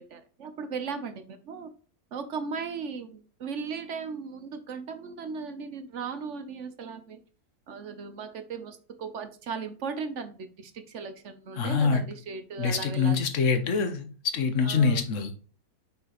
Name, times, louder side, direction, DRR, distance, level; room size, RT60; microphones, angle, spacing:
voice 1, 0.0-1.7 2.1-7.2 7.7-13.2 14.6-15.0, right 5 dB, 60° right, 0.9 m, -37 dB
voice 2, 11.6-12.0 12.6-15.3, left 5 dB, 55° left, 1.2 m, -25 dB
5.9 x 5.8 x 2.9 m
omnidirectional pair, 1.6 m